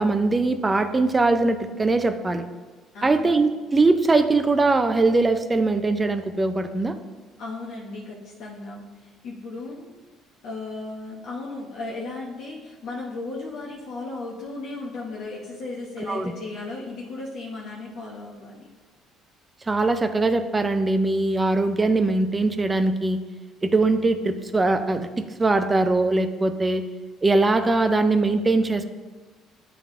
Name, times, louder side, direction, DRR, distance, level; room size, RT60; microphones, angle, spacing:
voice 1, 0.0-2.5 3.0-7.0 16.1-16.3 19.7-23.2 23.6-26.8 27.2-28.8, right 3 dB, 20° right, 9 dB, 0.4 m, -21 dB
voice 2, 2.9-3.3 7.4-9.9 10.4-18.7, left 3 dB, 65° left, -4 dB, 0.9 m, -35 dB
9.2 x 3.5 x 3.6 m, 1.3 s
cardioid pair, 120°, 0 cm